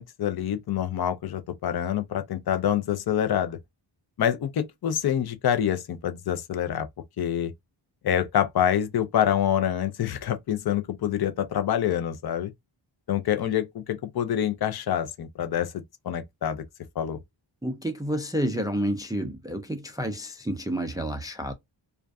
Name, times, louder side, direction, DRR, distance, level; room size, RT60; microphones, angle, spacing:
voice 1, 0.0-3.6 4.2-6.9 7.2-7.5 8.0-12.5 13.1-16.6 17.0-17.2, left 10 dB, 55° left, 0.5 m, -26 dB
voice 2, 17.6-21.5, equal, 10° right, 0.3 m, -29 dB
2.5 x 2.2 x 2.3 m
wide cardioid pair, 80°, 47 cm